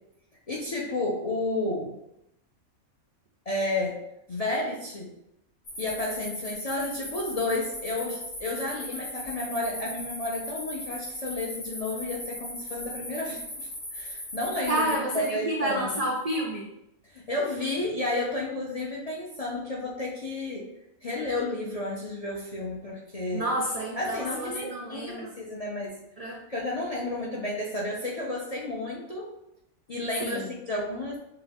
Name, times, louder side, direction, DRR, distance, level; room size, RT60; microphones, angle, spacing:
voice 1, 0.5-1.9 3.5-4.0 4.3-5.1 5.8-16.0 17.0-20.7 21.0-23.5 24.0-26.0 26.5-29.3 29.9-31.2, left 2 dB, 50° left, -3 dB, 0.4 m, -32 dB
sound 1, 5.7-15.0, left 1 dB, 70° left, 2.1 m, -38 dB
voice 2, 14.7-16.6 23.3-25.3 26.2-26.4 30.2-30.4, right 1 dB, 70° right, -2 dB, 0.3 m, -29 dB
5.7 x 2.4 x 3.4 m, 0.84 s
omnidirectional pair, 1.5 m